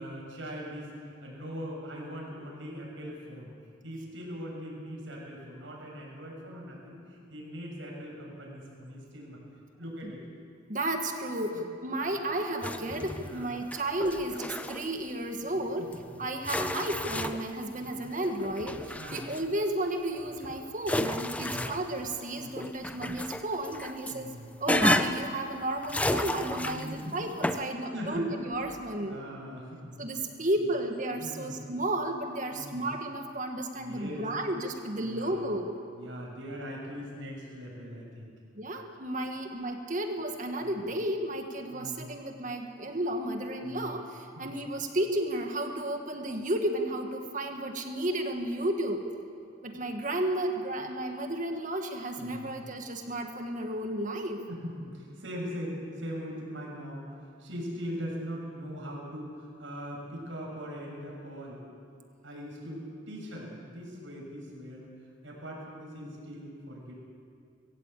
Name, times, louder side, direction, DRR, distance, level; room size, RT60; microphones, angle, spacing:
voice 1, 0.0-3.5 3.8-9.4 9.8-10.2 11.4-11.6 12.0-12.2 13.1-13.5 15.4-16.2 17.7-17.9 19.0-19.3 21.4-21.8 22.4-22.6 22.9-23.2 24.1-24.5 26.6-27.1 27.6-28.3 29.0-30.0 30.6-30.7 31.2-31.6 32.5-32.9 33.8-34.3 34.9-35.4 35.9-38.3 40.6-40.9 41.7-42.1 43.6-43.9 44.4-44.6 52.2-52.6 54.5-61.6 62.2-64.9 65.2-66.9, equal, 90° right, -2 dB, 7.0 m, -41 dB
voice 2, 10.7-24.3 24.6-29.2 30.0-35.8 38.5-49.1 49.6-54.4, right 1 dB, 45° right, 4 dB, 1.7 m, -33 dB
sound 1, 12.6-13.4 13.7-14.9 15.9-16.0 16.4-17.6 18.2-19.6 20.2-22.2 22.6-24.1 24.7-25.3 25.8-27.0 27.4-27.6, left 1 dB, 5° left, 0.7 m, -31 dB
21.0 x 16.5 x 8.4 m, 2.4 s
head